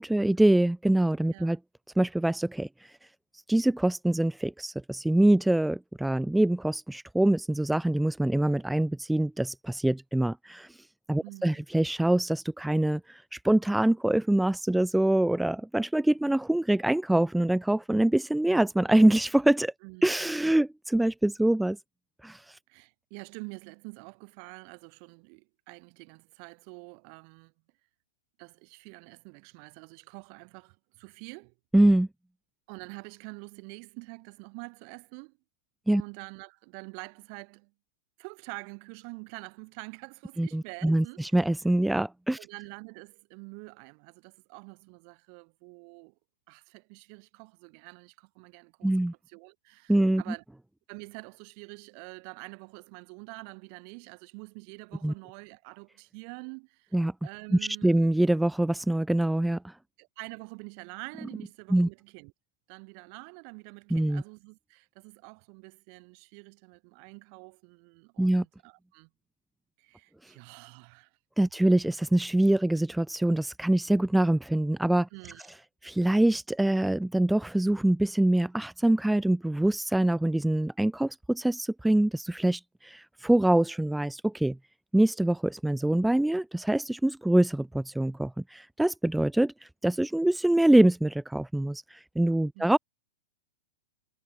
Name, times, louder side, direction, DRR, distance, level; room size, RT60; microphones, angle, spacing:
voice 1, 0.0-1.6 2.0-2.9 3.5-19.7 20.0-21.8 22.2-22.6 31.7-32.1 35.9-36.0 40.4-42.4 48.8-49.1 49.9-50.2 55.0-55.1 56.9-57.1 57.5-59.8 61.7-61.9 63.9-64.2 68.2-68.4 70.2-70.3 71.4-75.1 75.8-84.6 84.9-92.8, right 1 dB, 5° right, 0.3 m, -24 dB
voice 2, 11.2-11.6 19.8-20.3 22.7-27.5 28.4-31.5 32.7-35.4 35.9-37.7 38.2-41.4 42.4-46.1 46.5-50.4 50.9-57.0 57.2-58.0 60.0-62.3 62.7-69.1 69.8-71.1 75.1-75.5 92.6-92.7, right 40 dB or more, 45° right, 7.2 m, -46 dB
hypercardioid pair, 130°, 0 cm